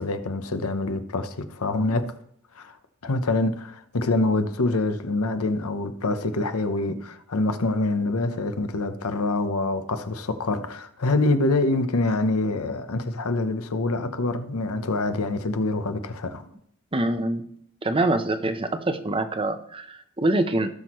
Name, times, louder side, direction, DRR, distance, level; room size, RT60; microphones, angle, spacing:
voice 1, 0.0-2.1 2.6-2.8 3.0-16.5, left 2 dB, 85° left, 0.8 m, -25 dB
voice 2, 16.9-17.5 17.8-20.7, right 2 dB, 25° right, 0.7 m, -25 dB
17.0 x 6.1 x 3.0 m
head